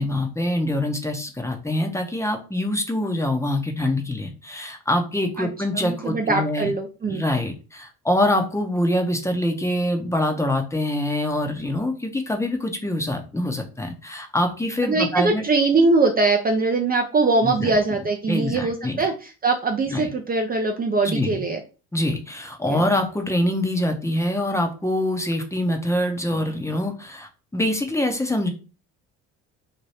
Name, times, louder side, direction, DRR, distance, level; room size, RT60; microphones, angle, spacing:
voice 1, 0.0-6.7 7.1-15.4 17.4-17.8 18.3-19.1 19.9-20.1 21.0-21.5 21.9-28.5, left 1 dB, 10° left, 4 dB, 0.7 m, -24 dB
voice 2, 5.7-7.2 14.9-21.6 22.7-22.8, right 3 dB, 25° right, 3 dB, 0.5 m, -22 dB
2.8 x 2.2 x 3.3 m, 0.34 s
hypercardioid pair, 65°, 35 cm